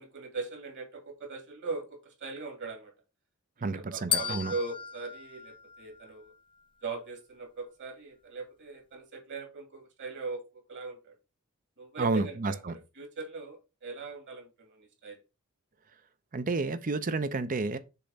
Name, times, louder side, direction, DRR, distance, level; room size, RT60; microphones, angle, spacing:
voice 1, 0.0-2.9 3.6-6.3 6.8-11.1 11.8-15.2, right 3 dB, 55° right, 2.3 m, -40 dB
voice 2, 3.6-4.5 12.0-12.7 16.3-17.8, right 3 dB, 35° right, 0.5 m, -30 dB
sound 1, 4.1-6.4, left 9 dB, 20° left, 0.3 m, -35 dB
6.8 x 3.0 x 5.2 m
head